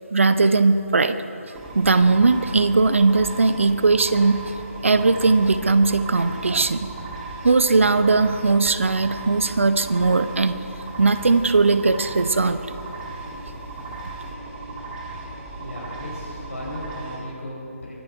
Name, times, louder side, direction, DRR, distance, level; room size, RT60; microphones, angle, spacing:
voice 1, 0.1-1.2 1.7-4.4 4.8-6.9 7.4-10.6 11.0-12.7, right 3 dB, 55° right, 11 dB, 0.8 m, -19 dB
sound 1, 1.6-17.2, right 2 dB, 10° right, 1.6 m, -36 dB
voice 2, 15.6-17.9, left 1 dB, 70° left, -4 dB, 4.5 m, -35 dB
24.0 x 10.5 x 4.8 m, 2.7 s
figure-of-eight pair, 150°, 8 cm